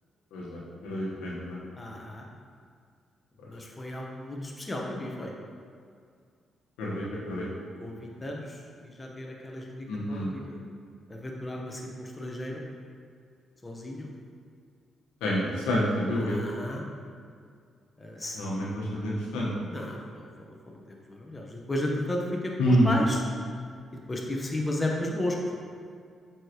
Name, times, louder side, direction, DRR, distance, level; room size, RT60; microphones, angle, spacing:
voice 1, 0.3-1.6 6.8-7.5 9.9-10.3 15.2-16.4 18.3-19.5 22.6-22.9, equal, 90° left, -5 dB, 1.2 m, -28 dB
voice 2, 1.8-2.3 3.4-5.3 7.8-10.6 11.1-12.6 13.6-14.1 16.1-16.8 18.0-18.4 19.6-20.3 20.6-23.2 24.1-25.6, left 1 dB, 25° left, -1 dB, 1.1 m, -34 dB
7.5 x 4.9 x 3.1 m, 2.2 s
supercardioid pair, 55°, 0 cm